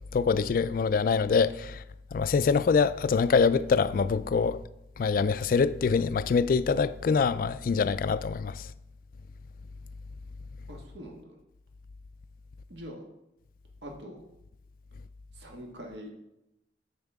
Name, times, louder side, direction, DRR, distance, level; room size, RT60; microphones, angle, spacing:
voice 1, 0.1-1.8 2.1-4.6 5.0-8.6, left 5 dB, 50° left, 0.3 m, -25 dB
voice 2, 10.7-11.4 12.7-13.0 13.8-14.2 15.3-16.1, equal, 80° right, 1.6 m, -43 dB
10.5 x 7.3 x 3.5 m
head